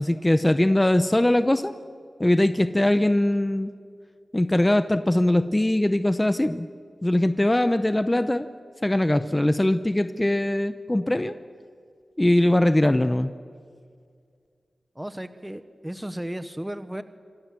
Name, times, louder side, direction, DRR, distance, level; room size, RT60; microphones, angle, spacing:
voice 1, 0.0-1.7 2.2-3.7 4.3-6.7 7.0-8.5 8.8-11.3 12.2-13.3, left 1 dB, 15° left, 11 dB, 0.8 m, -21 dB
voice 2, 14.9-17.0, right 1 dB, 10° right, 11 dB, 1.1 m, -34 dB
26.5 x 26.0 x 7.6 m, 2.1 s
wide cardioid pair, 110°, 0 cm